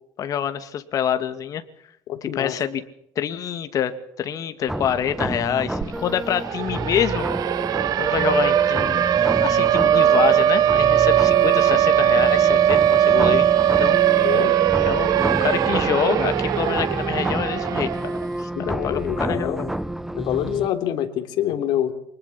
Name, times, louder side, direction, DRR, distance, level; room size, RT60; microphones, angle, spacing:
voice 1, 0.2-1.6 2.2-2.8 3.2-3.9 4.2-7.7 8.0-9.1 9.4-13.5 13.8-14.0 14.9-15.1 15.4-17.9 18.4-19.7, left 9 dB, 45° left, 9 dB, 2.3 m, -26 dB
voice 2, 2.1-2.6 14.2-14.5 18.6-19.7 20.1-21.9, left 11 dB, 60° left, 7 dB, 3.3 m, -26 dB
sound 1, 4.7-20.7, right 1 dB, 5° right, 0.9 m, -29 dB
Siren, 5.8-5.9 6.2-18.3, right 11 dB, 50° right, 1.0 m, -19 dB
25.5 x 20.0 x 5.9 m, 0.71 s
cardioid pair, 130°, 8 cm